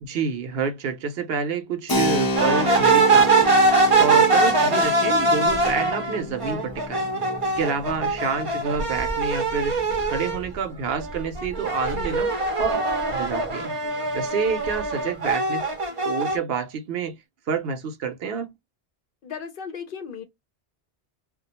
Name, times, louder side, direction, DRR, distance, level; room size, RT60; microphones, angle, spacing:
voice 1, 0.0-3.5 4.0-7.1 7.6-12.8 13.1-13.7 14.1-15.6 16.0-17.2 17.5-18.5, right 5 dB, 70° right, 0.8 m, -28 dB
Keyboard (musical), 1.9-10.3, left 1 dB, 30° left, 0.4 m, -30 dB
sound 1, 2.4-10.5 10.9-16.4, right 3 dB, 40° right, 0.5 m, -22 dB
voice 2, 11.9-12.4 14.9-15.2 19.2-20.2, left 6 dB, 60° left, 0.7 m, -37 dB
2.3 x 2.1 x 2.8 m
omnidirectional pair, 1.1 m